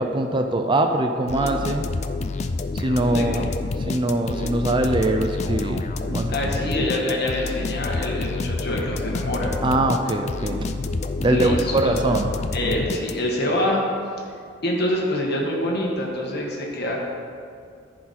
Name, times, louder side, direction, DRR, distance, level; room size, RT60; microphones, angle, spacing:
voice 1, 0.0-1.9 2.7-3.4 3.9-6.5 9.6-10.6 11.2-12.3, right 2 dB, 25° right, 5 dB, 0.5 m, -22 dB
sound 1, 1.3-13.5, left 3 dB, 35° left, 0.4 m, -28 dB
voice 2, 6.3-9.5 11.3-11.9 12.5-13.8 14.6-17.0, left 1 dB, 55° left, -2 dB, 1.6 m, -25 dB
14.0 x 4.7 x 4.2 m, 2.3 s
head